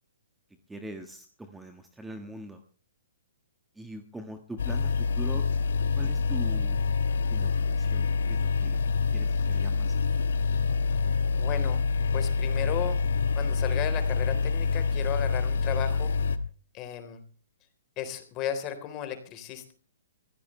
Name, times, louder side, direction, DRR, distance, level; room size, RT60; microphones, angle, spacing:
voice 1, 0.7-2.6 3.7-5.4 5.9-6.8 7.3-8.8 9.1-10.0 10.3-10.4, right 1 dB, 5° right, 6 dB, 1.5 m, -42 dB
sound 1, 4.6-16.4, left 5 dB, 70° left, 1.5 m, -26 dB
voice 2, 11.3-11.8 12.1-13.0 13.3-16.1 16.7-17.2 18.0-19.7, left 9 dB, 30° left, 8 dB, 3.8 m, -35 dB
24.0 x 16.5 x 3.3 m, 0.39 s
hypercardioid pair, 140°, 0 cm